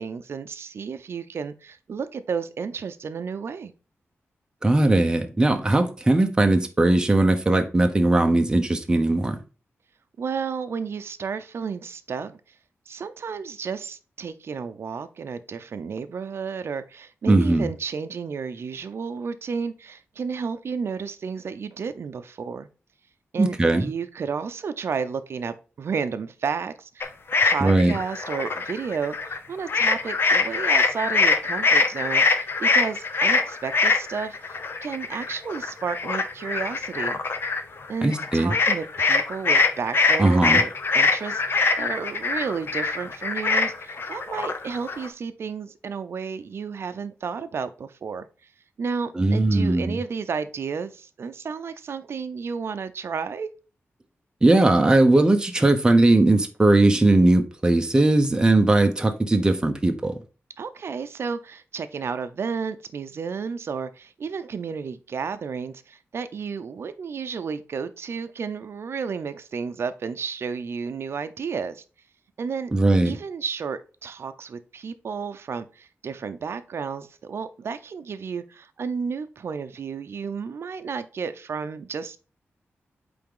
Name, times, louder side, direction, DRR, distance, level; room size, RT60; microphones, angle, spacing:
voice 1, 0.0-3.7 10.2-12.4 12.9-22.7 23.3-27.1 27.4-37.2 37.9-48.3 48.8-53.5 60.6-71.8 72.4-72.7 73.0-82.2, right 5 dB, 60° right, 0.6 m, -32 dB
voice 2, 4.6-9.4 17.3-17.7 23.4-23.9 27.6-27.9 38.0-38.5 40.2-40.6 49.2-50.0 54.4-60.1 72.7-73.2, right 2 dB, 15° right, 0.8 m, -19 dB
sound 1, 27.0-29.4 29.7-45.1, left 4 dB, 55° left, 0.8 m, -23 dB
8.5 x 3.5 x 3.8 m
wide cardioid pair, 145°, 5 cm